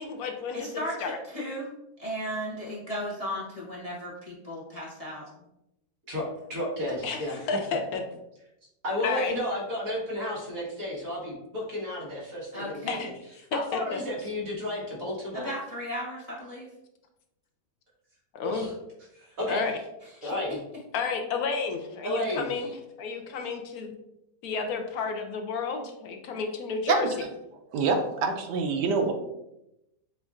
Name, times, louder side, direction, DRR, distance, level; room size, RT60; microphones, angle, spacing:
voice 1, 0.0-0.7 1.0-1.1 7.0-7.2 7.5-8.0 9.0-9.3 12.9-13.1 13.5-13.8 18.3-18.6 19.5-19.7 20.2-20.3 20.9-22.7 23.0-23.9 24.4-27.1, left 5 dB, 70° left, 4 dB, 1.0 m, -31 dB
voice 2, 0.5-0.9 1.2-1.7 2.0-5.2 12.5-13.0 15.3-16.7, equal, 30° left, -6 dB, 0.7 m, -35 dB
voice 3, 6.5-7.4 8.8-13.1 13.5-15.5 18.4-18.7 19.1-19.6 20.2-20.6 22.0-22.7, left 1 dB, 55° right, -5 dB, 1.8 m, -32 dB
voice 4, 26.9-27.3 27.7-29.1, right 4 dB, 80° right, 4 dB, 1.2 m, -26 dB
6.9 x 2.5 x 2.4 m, 0.87 s
omnidirectional pair, 1.8 m